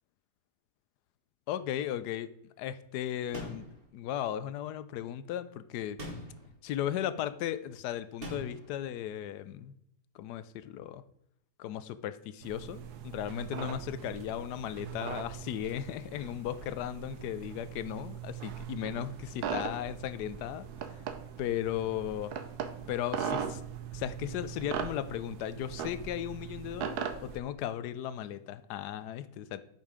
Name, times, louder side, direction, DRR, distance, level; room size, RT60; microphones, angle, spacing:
voice 1, 1.5-2.3 2.6-6.0 6.6-9.7 10.1-11.0 11.6-20.7 21.4-22.3 22.9-23.6 23.9-29.6, left 11 dB, 85° left, 1.2 m, -36 dB
sound 1, 3.3-3.8 6.0-6.5 8.2-8.7, equal, 35° right, 2.2 m, -41 dB
sound 2, 12.4-27.4, right 7 dB, 75° right, 1.3 m, -40 dB
8.1 x 5.4 x 5.0 m
omnidirectional pair, 1.7 m